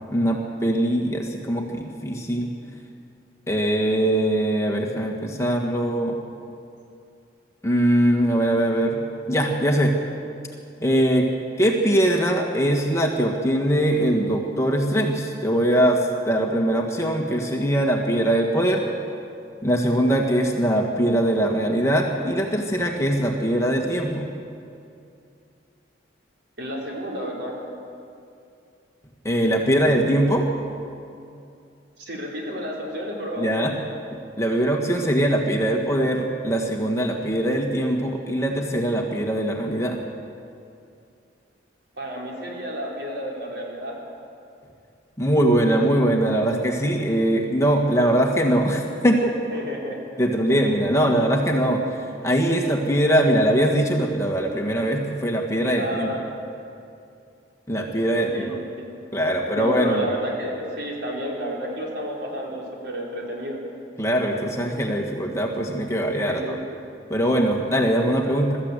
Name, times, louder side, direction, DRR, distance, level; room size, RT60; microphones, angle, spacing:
voice 1, 0.1-2.5 3.5-6.2 7.6-9.0 9.3-9.9 10.8-11.3 11.6-16.0 16.3-18.8 19.6-24.3 29.2-30.5 33.4-33.7 34.4-40.0 45.2-49.3 50.2-51.8 52.2-56.1 57.7-58.4 59.1-60.1 64.0-66.4 67.1-68.6, right 1 dB, 15° left, 1 dB, 1.7 m, -21 dB
voice 2, 26.6-27.6 32.0-33.6 42.0-44.0 49.5-50.0 55.8-56.2 58.1-58.9 59.6-63.6 66.3-66.6 68.1-68.2, equal, 65° right, -2 dB, 4.4 m, -31 dB
23.0 x 13.5 x 8.3 m, 2.5 s
head